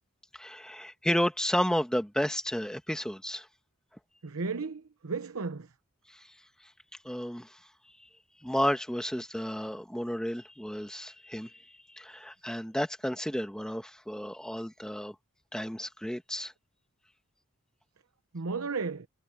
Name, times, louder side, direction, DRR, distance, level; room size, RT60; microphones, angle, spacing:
voice 1, 0.4-3.5 7.0-7.5 8.4-11.6 11.9-15.1 15.5-16.5, equal, 5° left, 1.5 m, -32 dB
voice 2, 4.2-5.7 18.3-19.1, right 4 dB, 65° right, 0.9 m, -34 dB
head